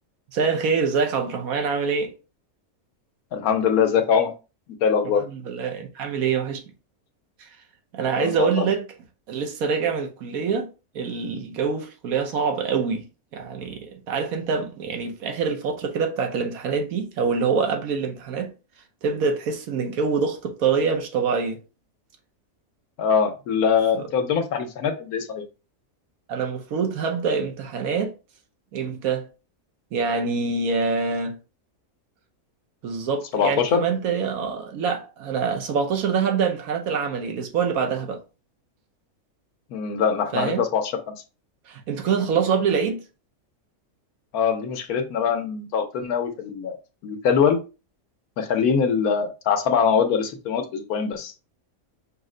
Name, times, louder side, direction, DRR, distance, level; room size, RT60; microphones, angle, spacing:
voice 1, 0.3-2.2 5.3-6.6 7.4-7.5 7.9-8.8 9.3-10.7 10.9-13.0 13.3-18.5 19.0-21.6 23.9-24.0 26.3-28.1 28.7-29.3 29.9-31.4 32.8-38.2 40.3-40.6 41.7-43.0, right 5 dB, 75° right, 1.2 m, -25 dB
voice 2, 3.3-4.3 4.8-5.2 8.2-8.7 23.0-25.4 33.3-33.8 39.7-41.2 44.3-46.8 47.0-47.6 48.4-51.3, left 6 dB, 85° left, 1.2 m, -23 dB
5.3 x 2.1 x 3.7 m
omnidirectional pair, 1.5 m